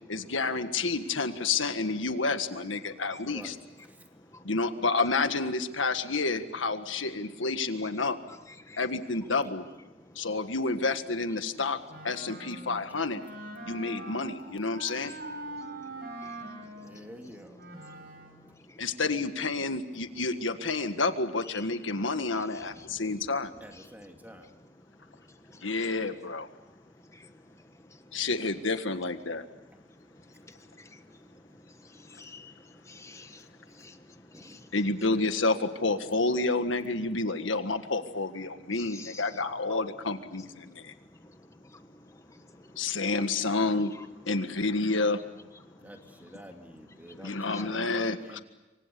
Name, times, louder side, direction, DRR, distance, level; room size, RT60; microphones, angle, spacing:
voice 1, 0.1-3.6 4.4-8.2 8.8-9.7 10.1-13.2 13.7-15.1 18.8-23.5 25.6-26.5 28.1-29.5 34.7-40.9 42.8-43.9 44.3-45.2 47.2-48.4, left 3 dB, 85° left, 9 dB, 1.7 m, -29 dB
voice 2, 8.3-8.9 9.3-9.4 16.2-16.3 21.4-21.8 22.5-22.9 23.7-23.9 32.1-32.5 32.9-33.4 33.8-34.0 34.4-34.6 38.8-39.8 41.7-41.8 43.8-44.1 47.4-47.6, left 3 dB, 15° left, 9 dB, 1.4 m, -48 dB
Wind instrument woodwind instrument, 11.9-18.4, right 2 dB, 50° right, 6.3 m, -43 dB
voice 3, 16.8-17.6 22.6-23.0 23.6-24.5 34.3-34.7 45.8-48.4, equal, 10° right, 4 dB, 2.5 m, -48 dB
28.0 x 24.5 x 6.9 m, 1.1 s
head